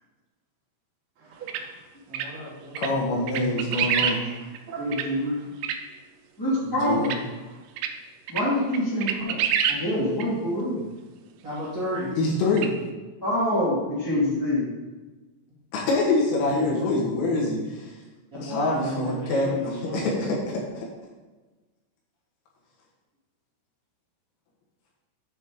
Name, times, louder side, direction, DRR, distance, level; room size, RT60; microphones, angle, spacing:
voice 1, 1.2-1.8 4.0-5.5 7.3-7.6, right 4 dB, 35° right, -8 dB, 2.6 m, -43 dB
sound 1, 1.5-1.6 2.1-2.3 2.8-2.9 3.3-4.2 4.5-4.6 4.9-5.1 5.6-5.8 7.0-7.2 7.8-7.9 8.3-8.4 8.7-9.8 10.2-10.3 12.6-12.7, right 9 dB, 85° right, 3.2 m, -26 dB
voice 2, 2.1-2.9 11.4-12.1 16.5-16.8 18.3-20.0, equal, 60° right, -11 dB, 1.1 m, -34 dB
voice 3, 2.8-4.2 6.7-7.2 12.2-12.7 15.7-17.9 18.3-20.9, left 2 dB, 80° left, -3 dB, 4.4 m, -25 dB
voice 4, 4.8-5.3 6.4-7.2 8.3-9.4 9.7-10.9 13.2-14.7, left 1 dB, 10° left, -10 dB, 1.2 m, -25 dB
9.2 x 4.4 x 5.1 m, 1.2 s
omnidirectional pair, 5.8 m